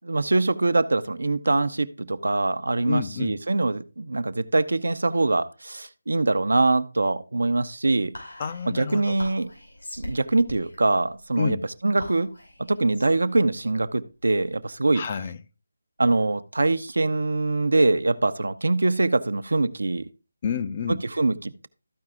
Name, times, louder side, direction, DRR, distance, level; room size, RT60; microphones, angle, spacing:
voice 1, 0.1-8.1 8.7-9.5 10.0-11.6 11.8-12.3 12.6-15.0 16.0-20.1 20.9-21.7, right 2 dB, 80° right, 0.7 m, -23 dB
voice 2, 2.8-3.4 8.4-9.2 11.4-11.6 14.9-15.4 20.4-21.0, left 6 dB, 35° left, 0.5 m, -29 dB
Whispering, 8.1-14.8, left 1 dB, 85° left, 5.5 m, -43 dB
13.5 x 4.8 x 3.6 m
figure-of-eight pair, 160°, 0 cm